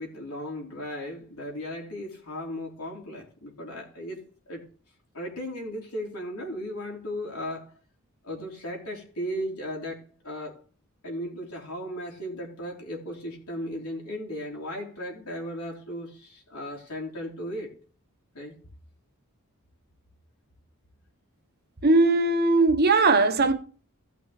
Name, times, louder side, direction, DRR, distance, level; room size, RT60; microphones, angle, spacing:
voice 1, 0.0-4.6 5.1-7.7 8.2-10.6 11.0-17.8 18.3-18.5, equal, 90° left, 3.5 m, -36 dB
voice 2, 21.8-23.5, right 3 dB, 45° right, 1.0 m, -19 dB
15.5 x 5.9 x 3.2 m
head